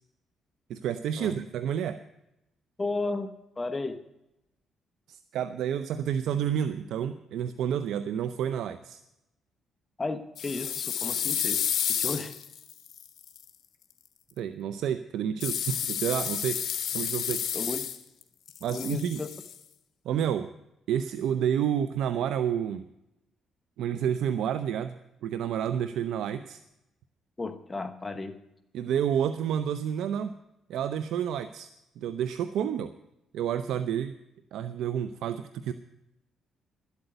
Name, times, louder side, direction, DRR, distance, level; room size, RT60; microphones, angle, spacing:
voice 1, 0.7-2.0 5.1-9.0 14.4-16.6 16.9-17.4 18.6-19.2 20.0-20.5 20.9-22.8 23.8-25.0 25.2-26.6 28.7-30.4 30.7-31.7 32.0-32.9 33.3-34.1 34.5-35.7, right 9 dB, 80° right, 11 dB, 0.6 m, -29 dB
voice 2, 2.8-4.0 10.0-11.6 11.9-12.3 17.5-17.9 18.7-19.3 27.4-28.4, left 3 dB, 25° left, 9 dB, 1.1 m, -34 dB
sound 1, 10.4-13.4 15.4-18.2 18.5-19.5, left 9 dB, 65° left, 1.3 m, -31 dB
12.5 x 8.3 x 7.9 m, 0.87 s
cardioid pair, 90°, 0 cm